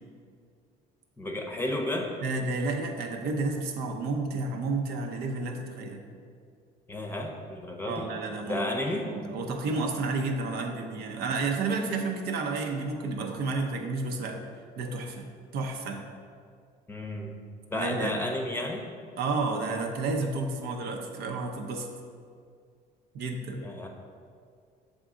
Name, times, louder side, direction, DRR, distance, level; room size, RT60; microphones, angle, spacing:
voice 1, 1.2-2.1 6.9-8.1 8.5-9.1 16.9-17.3 17.7-18.9 23.6-23.9, left 1 dB, 15° left, 1 dB, 0.7 m, -32 dB
voice 2, 2.2-6.1 7.9-8.7 9.1-14.4 14.8-15.3 15.5-16.0 17.7-18.2 19.2-21.9 23.1-23.7, right 3 dB, 70° right, 2 dB, 0.7 m, -31 dB
7.0 x 3.7 x 3.8 m, 2.2 s
cardioid pair, 110°, 17 cm